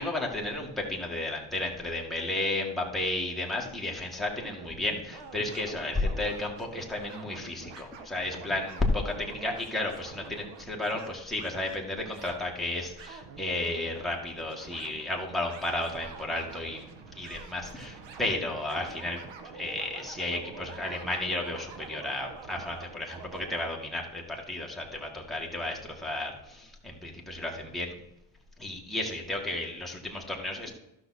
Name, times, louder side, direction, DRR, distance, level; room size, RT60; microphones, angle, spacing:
voice 1, 0.0-16.9 17.1-27.9 28.6-30.7, left 2 dB, ahead, -2 dB, 2.0 m, -33 dB
sound 1, 4.4-23.6, right 5 dB, 65° right, 1.3 m, -47 dB
12.0 x 6.2 x 4.2 m, 0.88 s
cardioid pair, 95°, 48 cm